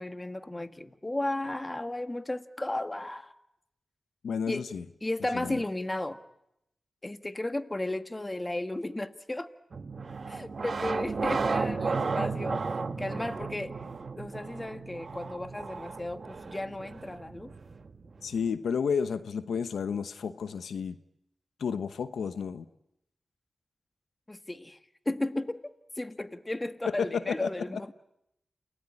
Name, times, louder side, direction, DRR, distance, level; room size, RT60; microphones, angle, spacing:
voice 1, 0.0-3.3 4.5-4.6 5.0-6.2 7.0-9.5 10.3-12.6 13.0-13.7 14.2-17.5 24.3-24.8 25.1-25.6 26.0-27.9, left 1 dB, 25° left, 1.8 m, -34 dB
voice 2, 4.2-4.8 5.3-5.6 18.2-21.0 21.6-22.7 26.9-27.8, left 6 dB, 85° left, 1.0 m, -31 dB
sound 1, 9.7-18.5, right 4 dB, 60° right, 1.8 m, -34 dB
29.0 x 18.5 x 9.9 m
cardioid pair, 50°, 0 cm